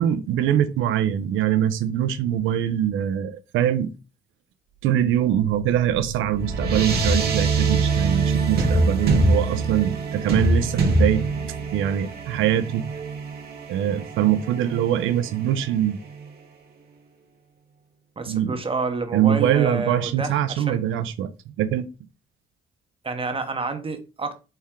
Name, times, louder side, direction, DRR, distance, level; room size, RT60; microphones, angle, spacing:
voice 1, 0.0-3.9 4.8-11.2 11.7-12.9 13.7-16.0 18.3-18.6 19.1-21.3 21.6-21.9, right 10 dB, 85° right, 0.5 m, -23 dB
sound 1, 5.6-16.2, right 3 dB, 50° right, 1.0 m, -24 dB
voice 2, 18.2-20.8 23.0-24.3, right 3 dB, 30° right, 0.7 m, -29 dB
4.3 x 2.2 x 3.5 m
cardioid pair, 90°, 20 cm